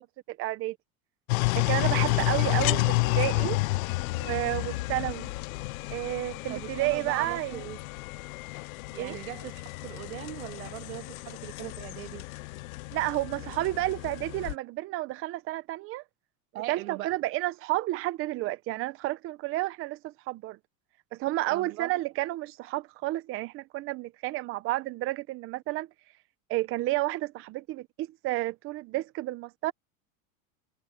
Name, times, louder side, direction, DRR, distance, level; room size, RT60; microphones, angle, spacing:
voice 1, 0.4-0.8 1.5-2.9 3.2-3.6 4.1-5.3 5.9-7.6 9.0-9.2 12.9-16.0 16.7-20.6 21.1-25.9 26.5-29.7, right 18 dB, 30° right, 0.7 m, -31 dB
sound 1, 1.3-14.5, left 21 dB, 85° left, 0.5 m, -31 dB
voice 2, 2.1-2.8 6.5-7.8 8.9-12.2 16.5-17.1 21.5-21.9, right 16 dB, 90° right, 2.3 m, -40 dB
supercardioid pair, 145°, 41 cm